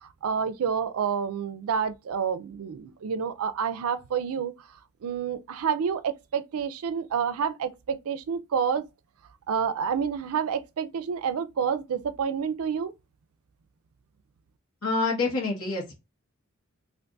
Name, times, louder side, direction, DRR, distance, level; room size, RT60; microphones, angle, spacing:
voice 1, 0.0-4.5 5.0-8.9 9.5-12.9, right 7 dB, 80° right, 0.4 m, -29 dB
voice 2, 14.8-15.9, left 3 dB, 75° left, 1.1 m, -27 dB
2.6 x 2.4 x 3.4 m
head